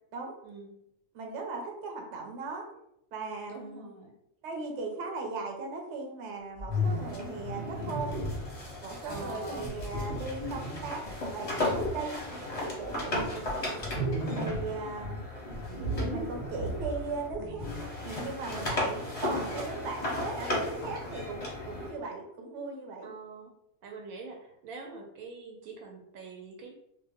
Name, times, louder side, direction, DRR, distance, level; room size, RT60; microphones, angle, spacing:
voice 1, 1.1-2.7 3.1-3.9 4.4-8.1 8.8-12.2 12.6-13.3 14.3-15.2 15.9-17.7 18.0-23.1, right 3 dB, 60° right, 2 dB, 0.9 m, -38 dB
voice 2, 3.5-4.2 9.0-9.8 13.1-13.6 14.6-15.1 23.0-23.5 23.8-26.7, right 3 dB, 85° right, 2 dB, 1.0 m, -44 dB
sound 1, 6.6-8.5 9.1-11.2 11.7-12.0 12.5-14.7 15.0-17.9, equal, 30° right, 0.7 m, -35 dB
sound 2, 6.7-17.3 17.6-21.9, left 1 dB, 40° left, 0.6 m, -36 dB
2.5 x 2.1 x 3.4 m, 0.79 s
omnidirectional pair, 1.4 m